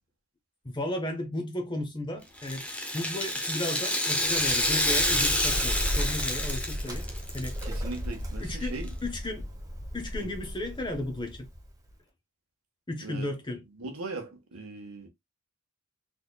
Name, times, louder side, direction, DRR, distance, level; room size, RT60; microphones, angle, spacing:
voice 1, 0.6-2.7 2.9-7.0 7.3-7.6 8.4-8.8 9.0-9.5 9.9-11.5 12.9-13.6, left 1 dB, 20° left, 0.9 m, -34 dB
Rattle (instrument), 2.4-7.6 7.9-8.0 8.9-9.0, left 1 dB, 5° left, 0.6 m, -28 dB
Bird, 4.2-11.9, equal, 15° right, 0.9 m, -35 dB
voice 2, 7.6-8.9 10.2-10.3 13.0-13.3 13.7-15.1, right 3 dB, 75° right, 1.2 m, -39 dB
3.7 x 3.3 x 2.2 m
head